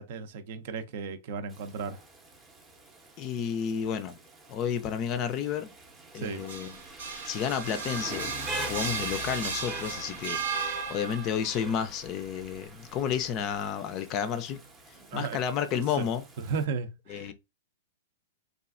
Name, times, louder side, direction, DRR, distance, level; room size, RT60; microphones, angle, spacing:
voice 1, 0.0-2.0 6.1-6.4 15.0-15.4 15.7-16.0 16.4-17.3, right 5 dB, 55° right, 0.5 m, -35 dB
Rain, 1.5-16.6, right 2 dB, 15° right, 0.6 m, -44 dB
voice 2, 3.2-4.2 4.5-5.7 6.1-6.7 7.2-14.6 15.1-16.2 17.1-17.3, left 8 dB, 35° left, 0.4 m, -31 dB
sound 1, 6.2-11.4, right 5 dB, 90° right, 1.0 m, -35 dB
3.1 x 2.4 x 2.4 m
hypercardioid pair, 135°, 0 cm